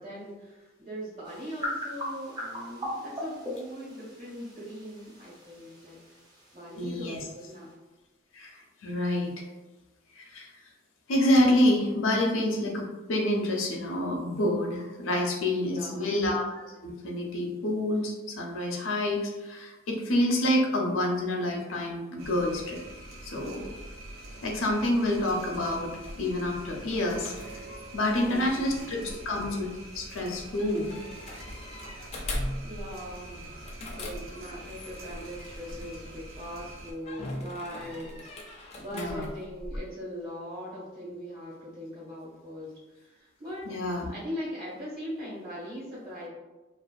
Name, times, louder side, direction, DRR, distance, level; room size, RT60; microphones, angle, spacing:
voice 1, 0.0-6.0 6.5-7.7 15.6-16.2 28.2-28.9 32.6-46.3, equal, 45° right, -7 dB, 1.3 m, -40 dB
sound 1, 1.2-7.7, equal, 20° right, 0.5 m, -40 dB
voice 2, 6.8-7.2 8.3-9.4 10.2-10.5 11.1-22.8 23.2-23.7 24.4-25.9 26.2-27.6 27.9-29.0 29.3-30.9 38.9-39.3 43.7-44.1, left 1 dB, 85° left, 0 dB, 0.5 m, -28 dB
sound 2, 22.2-36.9, right 1 dB, 85° right, 0.5 m, -45 dB
sound 3, 26.0-36.4 37.0-39.8, left 1 dB, 30° left, 0.3 m, -41 dB
2.5 x 2.4 x 2.3 m, 1.1 s
head